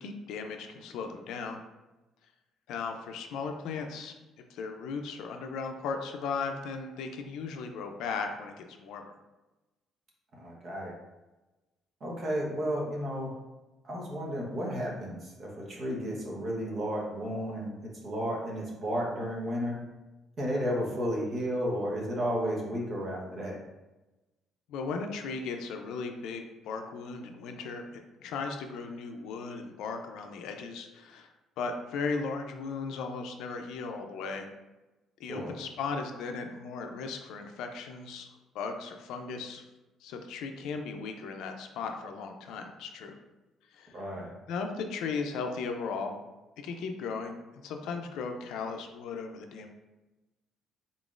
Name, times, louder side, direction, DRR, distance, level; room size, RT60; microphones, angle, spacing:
voice 1, 0.0-1.6 2.7-4.1 4.5-9.1 20.5-20.7 24.7-31.3 31.6-34.5 35.2-38.3 38.5-39.6 40.0-43.1 43.7-44.0 44.5-46.2 46.6-49.7, left 4 dB, 75° left, 4 dB, 0.4 m, -37 dB
voice 2, 10.4-10.9 12.0-13.3 13.8-19.8 20.4-23.6 35.3-35.5 43.9-44.3, equal, 40° right, -3 dB, 1.0 m, -33 dB
3.8 x 3.8 x 2.4 m, 1.1 s
cardioid pair, 165°, 0 cm